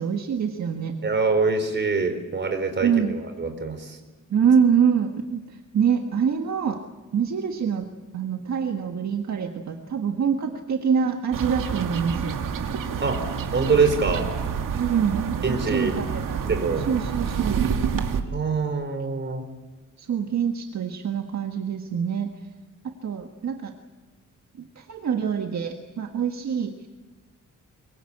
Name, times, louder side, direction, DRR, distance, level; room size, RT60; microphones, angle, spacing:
voice 1, 0.0-1.0 2.8-3.1 4.3-6.8 7.1-12.4 14.7-16.5 16.8-17.6 20.0-22.3 23.0-23.7 24.6-26.9, right 7 dB, 60° right, 4 dB, 1.6 m, -25 dB
voice 2, 1.0-4.0 13.0-13.2 13.5-14.3 15.4-16.0 16.4-16.8 18.3-19.4, right 4 dB, 35° right, 7 dB, 4.1 m, -24 dB
sound 1, 11.3-18.2, right 7 dB, 80° right, 2.3 m, -28 dB
24.0 x 23.5 x 8.7 m, 1.3 s
wide cardioid pair, 155°, 32 cm